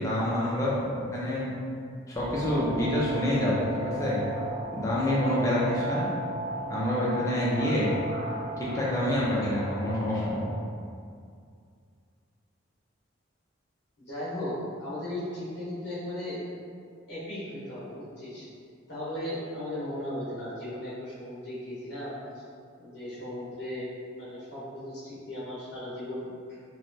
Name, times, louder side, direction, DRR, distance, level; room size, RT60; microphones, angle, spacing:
voice 1, 0.0-1.5 2.1-4.2 4.7-6.1 6.7-7.9 8.7-10.4, left 1 dB, 15° left, -7 dB, 0.5 m, -27 dB
sound 1, 2.1-10.5, right 1 dB, 70° right, 1.1 m, -36 dB
voice 2, 14.0-14.5 14.8-16.4 17.1-18.5 18.9-22.4 22.8-26.3, left 1 dB, 60° left, -11 dB, 1.0 m, -36 dB
3.1 x 2.1 x 2.6 m, 2.2 s
head